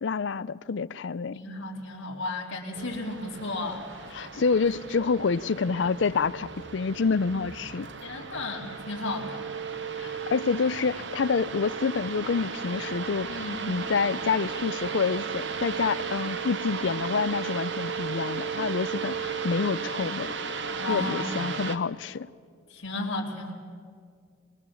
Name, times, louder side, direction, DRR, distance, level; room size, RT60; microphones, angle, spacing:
voice 1, 0.0-1.4 4.2-7.9 10.0-13.3 13.7-20.3 20.9-22.3, left 5 dB, 65° left, 0.5 m, -27 dB
voice 2, 1.3-4.3 8.0-9.4 13.3-13.7 20.7-21.4 22.7-23.5, left 2 dB, 85° left, 2.7 m, -34 dB
sound 1, 2.7-21.8, right 5 dB, 60° right, 1.0 m, -35 dB
22.0 x 21.5 x 7.2 m
head